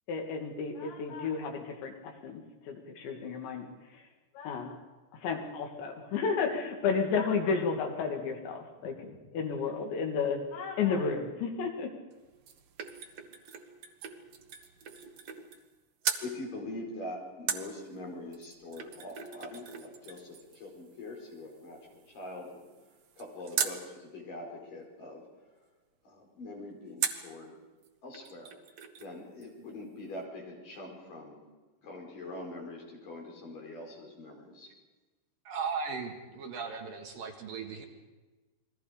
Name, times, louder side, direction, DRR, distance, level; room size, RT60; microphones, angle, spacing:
voice 1, 0.1-4.1 4.3-4.8 5.1-11.9, left 5 dB, 80° left, 3 dB, 4.5 m, -32 dB
sound 1, 12.1-15.7 16.0-16.3 17.5-23.8 27.0-27.3 27.8-27.9 28.1-29.1 29.4-29.5, right 7 dB, 75° right, 1.4 m, -39 dB
voice 2, 16.2-22.7 23.2-25.2 26.0-27.6 28.0-28.5 29.0-31.4 31.8-34.7, left 2 dB, 50° left, -1 dB, 6.1 m, -43 dB
voice 3, 35.5-37.9, right 5 dB, 60° right, 3 dB, 3.0 m, -37 dB
29.0 x 21.5 x 5.2 m, 1.2 s
omnidirectional pair, 5.1 m